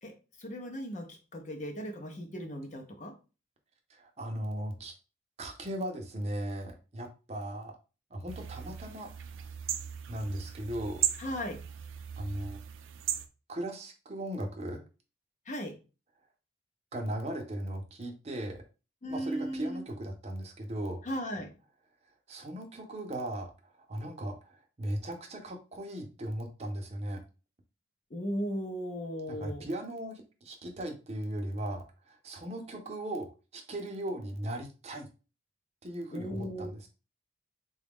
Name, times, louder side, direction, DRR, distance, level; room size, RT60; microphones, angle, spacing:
voice 1, 0.0-3.1 11.2-11.6 15.5-15.8 19.0-19.8 21.0-21.5 28.1-29.7 36.1-36.7, equal, 40° left, 4 dB, 0.6 m, -37 dB
voice 2, 3.9-4.9 5.4-7.7 8.1-9.3 10.1-11.1 12.2-12.6 13.5-14.8 16.9-18.6 19.1-21.0 22.3-27.2 29.3-35.1 35.8-36.9, right 1 dB, 35° right, 3 dB, 0.6 m, -37 dB
sound 1, 8.3-13.3, right 10 dB, 80° right, 0.4 m, -37 dB
4.0 x 2.3 x 3.4 m, 0.32 s
head